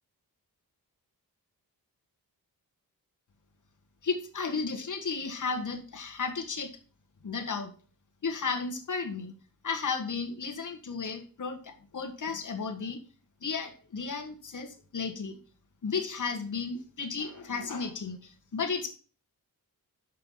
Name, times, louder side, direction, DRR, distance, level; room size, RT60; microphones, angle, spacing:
voice 1, 4.0-6.7 7.2-7.7 8.2-9.3 9.6-13.0 13.4-15.4 15.8-18.9, left 5 dB, 55° left, 4 dB, 1.7 m, -34 dB
6.6 x 5.5 x 6.4 m, 0.39 s
wide cardioid pair, 115°, 36 cm